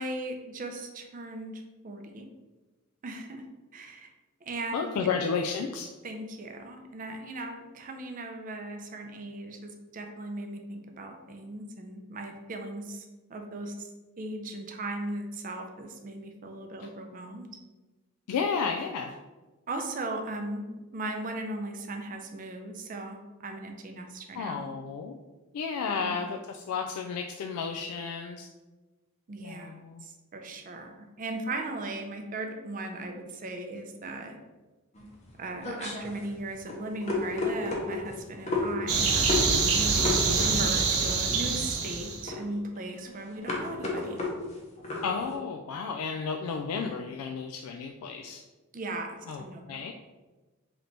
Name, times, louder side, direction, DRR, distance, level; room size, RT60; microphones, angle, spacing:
voice 1, 0.0-2.3 3.0-3.4 3.7-4.1 4.4-5.1 6.0-13.9 14.2-17.5 19.7-24.7 25.8-26.3 29.3-34.4 35.4-44.2 48.7-49.8, right 2 dB, 35° right, 4 dB, 0.4 m, -38 dB
voice 2, 4.7-5.9 16.8-16.9 18.3-19.1 24.3-25.2 25.5-28.5 29.4-30.0 45.0-48.4 49.3-49.9, left 5 dB, 90° left, 5 dB, 0.3 m, -32 dB
sound 1, 34.9-45.3, left 3 dB, 30° left, 0.7 m, -33 dB
sound 2, 38.9-42.2, right 4 dB, 75° right, 0.7 m, -25 dB
3.3 x 2.9 x 3.9 m, 1.2 s
head